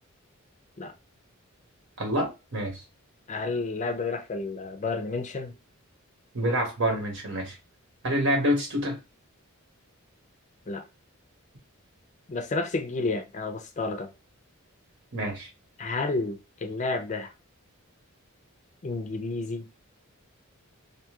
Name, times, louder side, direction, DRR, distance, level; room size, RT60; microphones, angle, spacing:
voice 1, 2.0-2.8 6.3-7.6 8.0-9.0 15.1-15.5, equal, 60° right, 0.9 m, -27 dB
voice 2, 3.3-5.6 10.7-10.9 12.3-14.1 15.8-17.3 18.8-19.7, left 3 dB, 35° left, 0.4 m, -31 dB
2.7 x 2.3 x 2.8 m
head